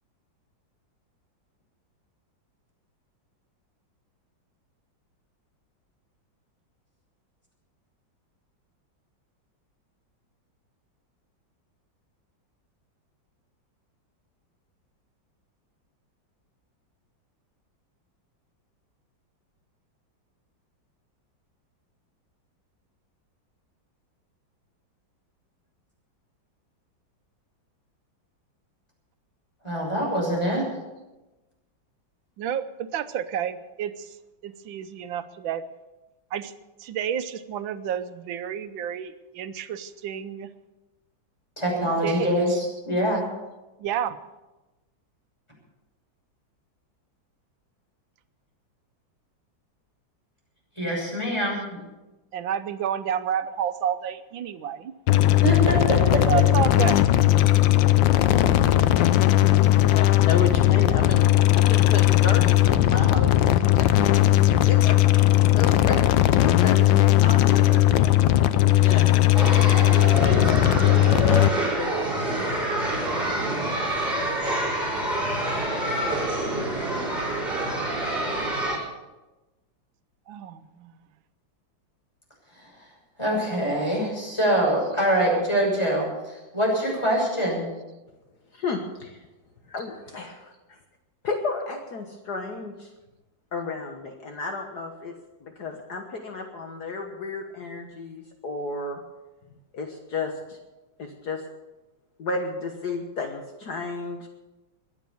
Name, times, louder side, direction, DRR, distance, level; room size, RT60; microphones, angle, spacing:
voice 1, 29.6-30.7 41.6-43.3 50.8-51.8 55.4-56.2 83.2-87.6, right 1 dB, 15° left, -2 dB, 6.5 m, -24 dB
voice 2, 32.4-34.2 34.4-35.7 36.3-36.5 36.8-40.5 42.0-42.7 43.8-44.2 51.4-51.5 52.3-54.9 56.3-57.0 80.3-80.9 84.8-84.9, right 9 dB, 85° right, 11 dB, 1.6 m, -30 dB
sound 1, 55.1-71.5, left 14 dB, 80° left, 1.4 m, -18 dB
voice 3, 59.8-61.2 61.5-63.4 63.8-65.3 65.6-66.1 66.4-69.1 69.4-72.1 88.5-89.2 89.7-90.8 91.2-92.9 93.5-95.1 95.4-99.0 99.7-100.6 101.0-101.4 102.2-104.3, left 4 dB, 60° left, 4 dB, 1.8 m, -33 dB
sound 2, 69.3-78.8, right 1 dB, 25° right, 4.5 m, -27 dB
22.0 x 8.3 x 7.0 m, 1.1 s
omnidirectional pair, 2.1 m